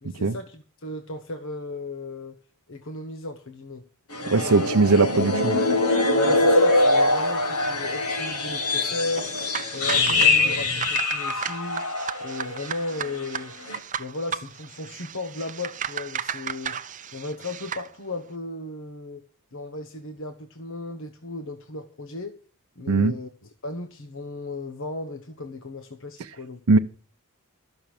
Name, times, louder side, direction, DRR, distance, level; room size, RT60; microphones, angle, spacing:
voice 1, 0.0-2.4 2.7-3.8 4.4-4.7 6.1-9.5 9.7-11.8 12.2-13.5 14.0-16.8 17.1-19.2 19.5-22.4 22.8-23.3 23.6-26.8, left 2 dB, 60° left, 1.1 m, -35 dB
sound 1, 4.1-12.7 13.0-13.3 13.7-13.8, left 2 dB, 80° left, 1.5 m, -23 dB
voice 2, 4.3-5.6 22.9-23.1 26.7-26.8, right 3 dB, 80° right, 0.7 m, -19 dB
sound 2, 9.1-17.9, right 7 dB, 35° right, 0.6 m, -34 dB
13.5 x 6.3 x 8.8 m
head